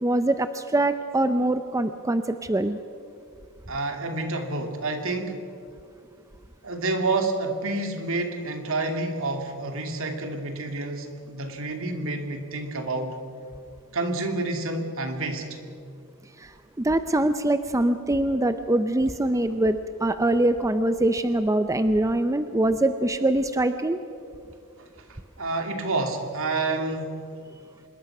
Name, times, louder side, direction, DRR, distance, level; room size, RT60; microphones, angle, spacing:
voice 1, 0.0-2.8 16.4-24.0, right 1 dB, 15° right, 10 dB, 0.6 m, -23 dB
voice 2, 3.7-5.5 6.6-13.2 13.9-15.5 25.1-27.3, right 2 dB, 65° right, 5 dB, 2.6 m, -29 dB
25.0 x 21.5 x 6.0 m, 2.4 s
head